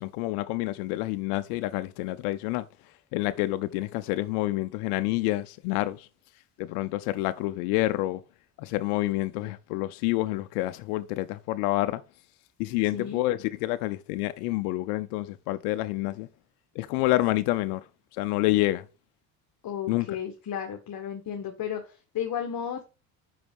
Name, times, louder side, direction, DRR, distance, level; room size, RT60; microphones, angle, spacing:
voice 1, 0.0-2.7 3.1-6.1 6.6-8.2 8.6-12.0 12.6-16.3 16.8-17.8 18.1-18.8 19.9-20.1, left 17 dB, 80° left, 0.6 m, -28 dB
voice 2, 19.6-22.8, left 9 dB, 50° left, 1.5 m, -34 dB
5.5 x 5.0 x 5.3 m
supercardioid pair, 80°, 45 cm